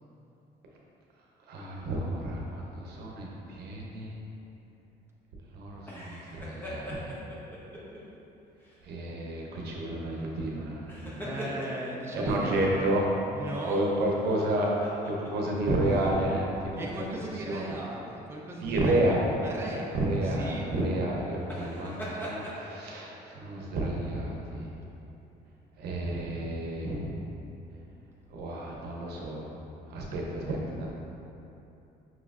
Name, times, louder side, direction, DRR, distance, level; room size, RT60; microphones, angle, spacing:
voice 1, 1.5-4.1 5.5-7.2 8.8-10.9 12.1-13.1 13.7-14.7 15.1-17.0 17.5-17.6 18.6-19.4 20.0-24.7 25.8-27.1 28.3-29.5 29.9-30.9, right 1 dB, 70° right, -2 dB, 0.8 m, -30 dB
sound 1, 5.8-8.0 8.6-8.8 10.7-12.0 13.5-15.5 15.8-16.0 16.7-17.5 18.6-18.8 21.4-22.6, equal, 10° left, 0.8 m, -41 dB
voice 2, 11.2-12.9 13.3-13.8 16.8-19.1 19.4-20.7, right 1 dB, 15° right, -3 dB, 0.5 m, -37 dB
5.6 x 3.1 x 2.4 m, 2.9 s
cardioid pair, 110°, 17 cm